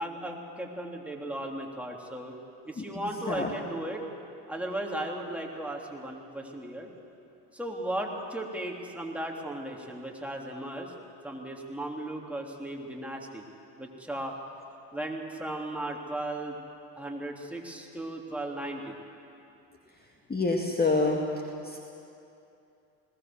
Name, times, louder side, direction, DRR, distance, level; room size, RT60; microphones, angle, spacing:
voice 1, 0.0-2.3 2.7-4.0 4.5-6.9 7.5-10.9 11.2-13.5 13.8-14.3 14.9-16.6 17.0-19.0, right 1 dB, 5° right, 0 dB, 3.2 m, -36 dB
voice 2, 20.3-21.2 21.7-21.8, left 3 dB, 20° left, 1 dB, 2.2 m, -26 dB
20.0 x 17.5 x 7.8 m, 2.7 s
hypercardioid pair, 70°, 46 cm